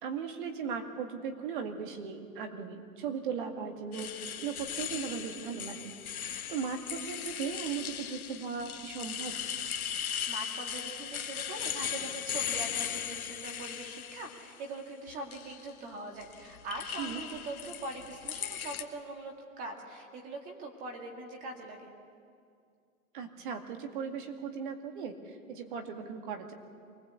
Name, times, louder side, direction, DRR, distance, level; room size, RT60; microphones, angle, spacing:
voice 1, 0.0-4.1 4.4-9.4 17.0-17.2 23.1-26.5, right 6 dB, 35° right, 5 dB, 2.2 m, -38 dB
sound 1, 3.9-14.5 15.1-15.6 16.2-18.8, left 9 dB, 80° left, 1.7 m, -38 dB
voice 2, 10.0-21.9, right 2 dB, 20° right, 2 dB, 2.0 m, -42 dB
24.0 x 19.0 x 8.2 m, 2.3 s
hypercardioid pair, 165°, 43 cm